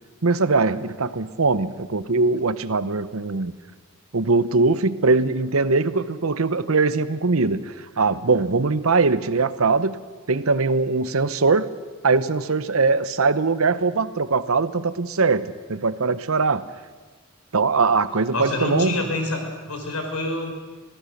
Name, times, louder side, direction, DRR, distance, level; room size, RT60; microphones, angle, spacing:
voice 1, 0.2-3.5 4.1-10.0 10.3-11.7 12.0-16.6 17.5-18.9, right 4 dB, 65° right, 14 dB, 0.9 m, -21 dB
voice 2, 18.3-20.5, left 2 dB, 85° left, 3 dB, 5.3 m, -27 dB
26.5 x 17.5 x 6.6 m, 1.4 s
head